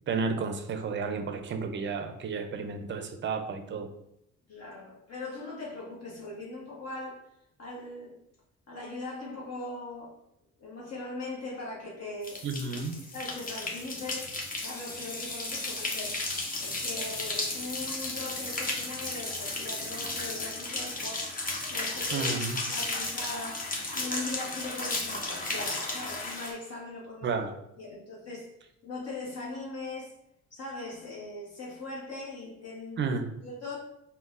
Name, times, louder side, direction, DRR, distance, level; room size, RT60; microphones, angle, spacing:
voice 1, 0.1-3.9 12.4-13.0 22.1-22.6 27.2-27.5 33.0-33.3, right 5 dB, 40° right, 7 dB, 0.4 m, -32 dB
voice 2, 4.5-7.2 7.6-8.1 8.7-10.1 10.6-12.4 13.1-14.3 14.6-16.2 16.6-21.2 21.7-22.3 22.6-27.3 27.8-28.5 28.8-30.1 30.5-33.1 33.4-33.8, left 2 dB, 55° left, -4 dB, 0.9 m, -40 dB
sound 1, 12.2-26.5, left 2 dB, 30° left, 0.6 m, -34 dB
3.7 x 2.1 x 2.4 m, 0.81 s
cardioid pair, 90°, 30 cm